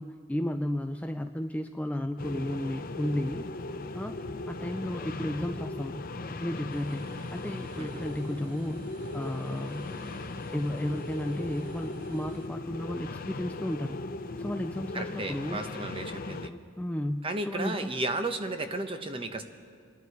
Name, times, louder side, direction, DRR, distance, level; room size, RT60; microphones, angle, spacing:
voice 1, 0.0-3.5 3.9-4.2 4.5-6.0 6.4-9.9 10.5-14.0 14.4-15.6 16.4-17.9, left 1 dB, 5° left, 6 dB, 0.3 m, -33 dB
sound 1, 2.2-16.5, left 2 dB, 45° left, 0.6 m, -38 dB
sound 2, 6.7-12.5, right 3 dB, 90° right, 0.9 m, -54 dB
voice 2, 7.7-8.1 14.9-16.5 17.2-19.4, right 2 dB, 25° right, 7 dB, 0.9 m, -34 dB
27.5 x 10.5 x 4.7 m, 2.3 s
head